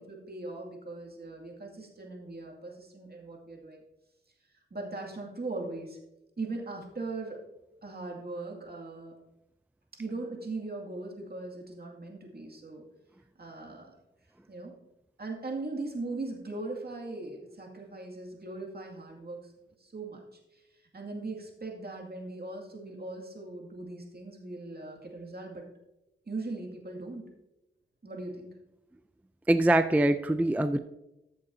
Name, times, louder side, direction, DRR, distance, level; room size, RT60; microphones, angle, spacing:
voice 1, 0.0-3.8 4.7-6.0 6.4-7.4 7.8-9.1 10.0-12.8 13.4-13.9 14.5-14.7 15.2-19.4 19.8-20.2 20.5-20.6 20.9-25.6 26.3-27.3 28.0-28.5, right 2 dB, 50° right, -1 dB, 2.2 m, -39 dB
voice 2, 29.5-30.8, right 1 dB, 10° right, 10 dB, 0.4 m, -23 dB
14.0 x 6.8 x 2.7 m, 0.92 s
cardioid pair, 55°, 20 cm